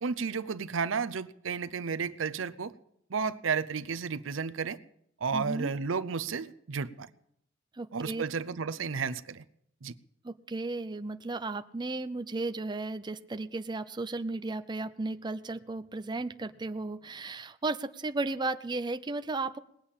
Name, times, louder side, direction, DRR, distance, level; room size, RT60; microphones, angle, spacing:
voice 1, 0.0-2.7 3.1-4.8 5.2-7.1 7.9-9.4 9.8-9.9, right 5 dB, 85° right, 0.6 m, -32 dB
voice 2, 5.3-5.7 7.7-8.2 10.2-19.6, right 3 dB, 25° right, 0.5 m, -34 dB
19.5 x 8.5 x 7.3 m
head